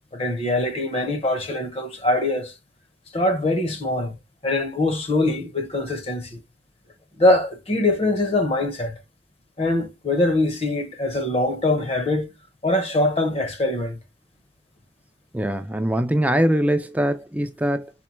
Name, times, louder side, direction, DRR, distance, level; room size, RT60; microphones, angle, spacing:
voice 1, 0.1-2.5 3.1-4.1 4.4-6.4 7.2-8.9 9.6-12.3 12.6-14.0, left 2 dB, 30° left, 0.7 m, -23 dB
voice 2, 15.3-17.9, right 1 dB, 10° right, 0.3 m, -22 dB
4.3 x 2.1 x 4.3 m
head